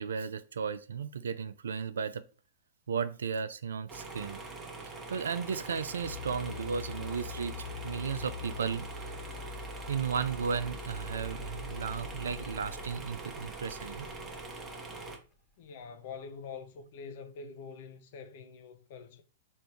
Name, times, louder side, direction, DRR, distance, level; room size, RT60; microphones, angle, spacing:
voice 1, 0.0-2.2 2.9-4.4 5.1-9.1 9.9-14.1, right 6 dB, 75° right, 0.4 m, -35 dB
sound 1, 3.9-15.2, right 3 dB, 20° right, 0.9 m, -43 dB
sound 2, 6.0-15.1, left 6 dB, 15° left, 0.6 m, -44 dB
voice 2, 15.6-19.2, left 5 dB, 55° left, 0.6 m, -45 dB
3.4 x 2.6 x 4.4 m
hypercardioid pair, 110°, 0 cm